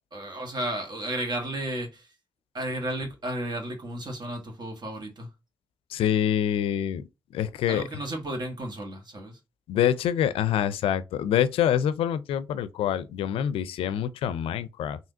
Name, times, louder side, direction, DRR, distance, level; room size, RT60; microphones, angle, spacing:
voice 1, 0.1-2.1 2.5-5.3 7.7-9.4, right 1 dB, 50° right, 1.5 m, -33 dB
voice 2, 5.9-7.0 7.3-7.9 9.7-15.0, left 10 dB, 85° left, 0.4 m, -26 dB
3.3 x 2.8 x 2.7 m
supercardioid pair, 50°, 9 cm